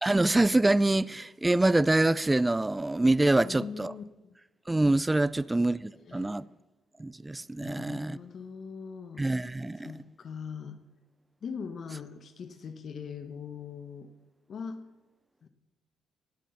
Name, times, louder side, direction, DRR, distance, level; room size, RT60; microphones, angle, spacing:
voice 1, 0.0-3.9 4.7-6.5 7.0-8.2 9.2-9.9, right 2 dB, 15° right, 0.3 m, -25 dB
voice 2, 3.3-4.0 6.0-6.4 7.6-9.3 9.8-10.8 11.4-14.1 14.5-14.8 15.4-15.5, left 6 dB, 55° left, 1.1 m, -41 dB
17.5 x 7.4 x 5.7 m
cardioid pair, 100°, 0 cm